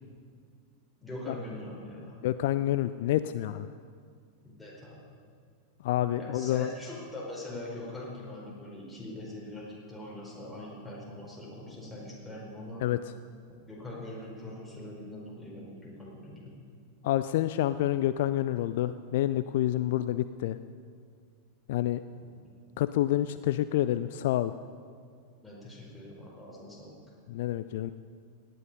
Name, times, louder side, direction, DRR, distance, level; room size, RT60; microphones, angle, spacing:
voice 1, 1.0-2.2 4.4-5.0 6.2-12.8 13.7-16.5 22.2-22.3 25.4-27.0, left 1 dB, ahead, -5 dB, 4.4 m, -42 dB
voice 2, 2.2-3.7 5.8-6.7 12.8-13.0 17.0-20.6 21.7-22.0 22.8-24.5 27.3-27.9, left 13 dB, 55° left, 13 dB, 0.3 m, -28 dB
17.5 x 10.0 x 5.4 m, 2.1 s
figure-of-eight pair, 90°, 0 cm